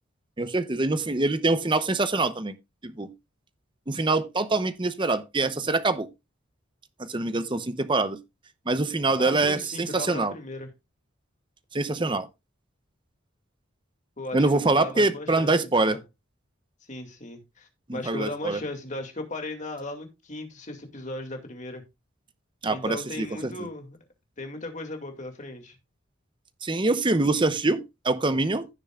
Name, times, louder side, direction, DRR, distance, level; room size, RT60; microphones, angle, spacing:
voice 1, 0.4-2.5 2.8-3.1 3.9-6.1 7.0-8.2 8.7-10.3 11.7-12.3 14.3-16.0 17.9-18.6 22.6-23.7 26.6-28.7, right 2 dB, 25° right, 0.8 m, -25 dB
voice 2, 9.2-10.7 14.2-16.0 16.9-21.8 22.7-24.0 24.4-25.8, left 2 dB, 40° left, 2.3 m, -37 dB
16.0 x 6.9 x 2.4 m
head